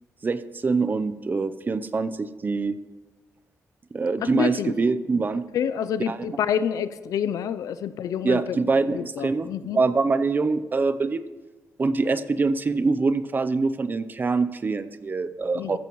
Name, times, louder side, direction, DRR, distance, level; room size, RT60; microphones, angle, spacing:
voice 1, 0.2-2.8 3.9-5.4 6.1-6.3 8.2-11.2 11.8-15.8, right 4 dB, 35° right, 13 dB, 0.6 m, -24 dB
voice 2, 4.2-4.8 5.5-8.6 8.9-9.8 15.5-15.8, left 8 dB, 85° left, 14 dB, 0.5 m, -28 dB
14.0 x 14.0 x 3.1 m, 1.2 s
cardioid pair, 90°, 6 cm